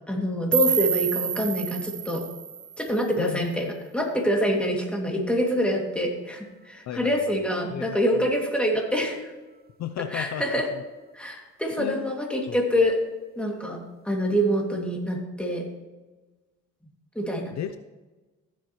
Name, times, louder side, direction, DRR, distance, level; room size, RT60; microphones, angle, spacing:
voice 1, 0.1-2.3 2.8-9.3 10.1-10.7 11.1-13.0 13.4-15.7 17.2-17.5, equal, 5° left, 0 dB, 2.4 m, -26 dB
sound 1, 0.5-3.5, right 8 dB, 30° right, 0.5 m, -28 dB
voice 2, 6.9-7.4 7.7-8.3 9.8-10.4 10.7-10.8 11.8-12.1 12.5-12.6 17.5-17.8, left 9 dB, 65° left, 10 dB, 0.6 m, -34 dB
15.5 x 7.5 x 3.1 m, 1.2 s
cardioid pair, 90°, 30 cm